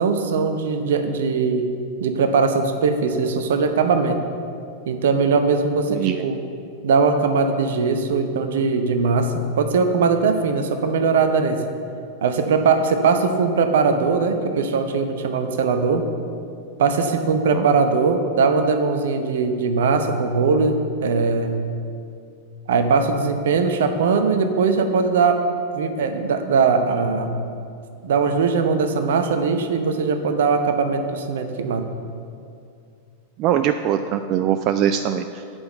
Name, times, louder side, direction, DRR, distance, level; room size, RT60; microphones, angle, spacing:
voice 1, 0.0-4.2 4.9-6.4 6.8-11.7 12.2-16.1 16.8-21.6 22.7-25.4 25.7-27.4 28.0-31.9, right 4 dB, 60° right, 7 dB, 0.7 m, -20 dB
voice 2, 5.9-6.3 17.5-17.7 33.4-35.4, right 10 dB, 40° right, 9 dB, 0.3 m, -22 dB
8.0 x 5.7 x 7.8 m, 2.4 s
figure-of-eight pair, 90°, 0 cm